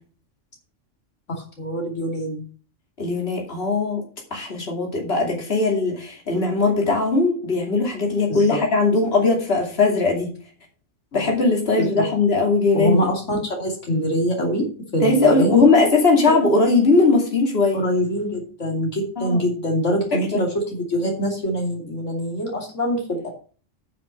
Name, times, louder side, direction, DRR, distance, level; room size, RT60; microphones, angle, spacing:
voice 1, 1.3-2.5 8.3-8.6 11.1-11.2 11.8-12.0 12.7-15.6 17.7-23.3, equal, 75° left, 0 dB, 3.1 m, -24 dB
voice 2, 3.0-4.0 4.3-10.3 11.1-13.0 15.0-17.8 19.2-19.4 20.1-20.4, left 3 dB, 55° left, 0 dB, 2.9 m, -19 dB
9.2 x 5.9 x 6.6 m, 0.39 s
omnidirectional pair, 1.3 m